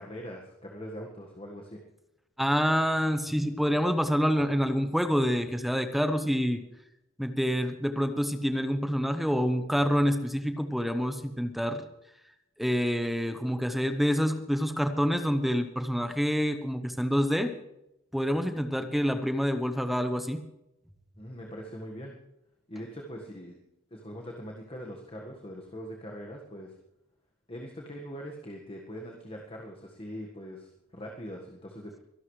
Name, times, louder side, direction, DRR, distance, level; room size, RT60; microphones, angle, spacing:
voice 1, 0.0-1.8 21.2-22.2 22.7-23.6 23.9-26.7 27.5-32.0, equal, 25° left, 0 dB, 1.6 m, -42 dB
voice 2, 2.4-6.6 7.2-11.8 12.6-17.5 18.1-20.4, equal, ahead, 8 dB, 0.9 m, -27 dB
23.5 x 12.0 x 3.3 m, 0.86 s
head